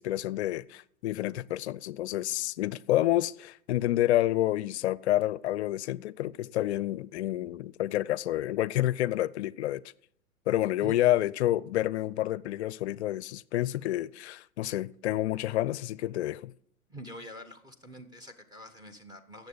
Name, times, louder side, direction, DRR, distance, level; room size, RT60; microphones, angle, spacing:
voice 1, 0.0-9.8 10.5-16.5, left 14 dB, 55° left, 0.5 m, -29 dB
voice 2, 16.9-19.5, equal, 10° right, 1.1 m, -45 dB
17.0 x 7.1 x 4.0 m
hypercardioid pair, 115°, 41 cm